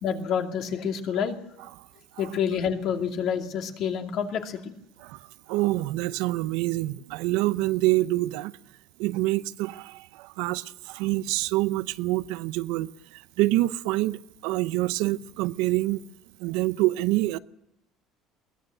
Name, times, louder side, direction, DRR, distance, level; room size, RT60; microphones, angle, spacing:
voice 1, 0.0-1.4 2.2-4.7, left 7 dB, 55° left, 2.5 m, -28 dB
voice 2, 5.5-8.5 9.0-16.0 16.4-17.4, right 18 dB, 85° right, 0.7 m, -26 dB
22.0 x 18.5 x 7.9 m
cardioid pair, 145°, 0 cm